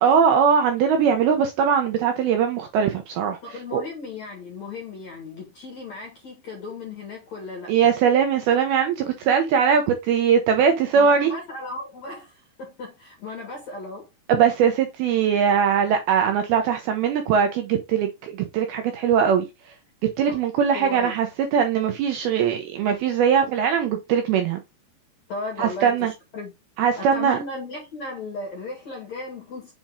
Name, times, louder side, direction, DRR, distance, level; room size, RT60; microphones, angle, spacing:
voice 1, 0.0-3.4 3.7-3.8 7.7-11.3 14.3-19.4 20.2-24.6 25.6-26.1 26.8-27.4, right 7 dB, 75° right, 2.6 m, -21 dB
voice 2, 3.4-7.7 10.9-14.1 20.3-20.4 20.7-21.1 25.3-26.5 27.0-29.7, left 2 dB, 50° left, 2.5 m, -35 dB
7.3 x 4.3 x 3.7 m
omnidirectional pair, 4.9 m